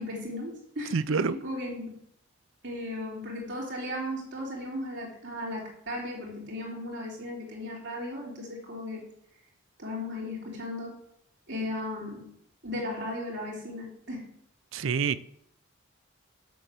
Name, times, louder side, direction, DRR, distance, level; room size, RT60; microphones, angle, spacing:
voice 1, 0.0-2.0 2.6-9.1 9.8-11.0 11.5-12.3 12.6-14.3, left 1 dB, 60° right, 3.2 m, -36 dB
voice 2, 0.9-1.3 14.7-15.2, right 5 dB, 80° right, 0.5 m, -27 dB
7.6 x 6.6 x 6.9 m
head